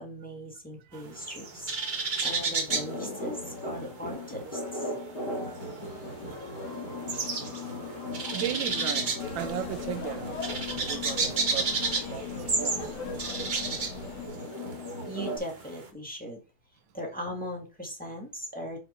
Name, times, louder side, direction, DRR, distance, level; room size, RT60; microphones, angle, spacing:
voice 1, 0.0-4.9 15.1-16.4 16.9-18.8, equal, 5° left, 1.5 m, -39 dB
sound 1, 0.9-4.0 4.3-15.8, right 4 dB, 45° right, 0.6 m, -32 dB
sound 2, 2.7-15.4, left 2 dB, 55° left, 2.9 m, -38 dB
voice 2, 4.9-5.9 6.3-6.5 8.3-13.0 13.4-13.7, right 12 dB, 75° right, 1.3 m, -38 dB
sound 3, 9.2-14.3, left 5 dB, 85° left, 1.9 m, -42 dB
5.4 x 5.1 x 4.3 m
omnidirectional pair, 2.3 m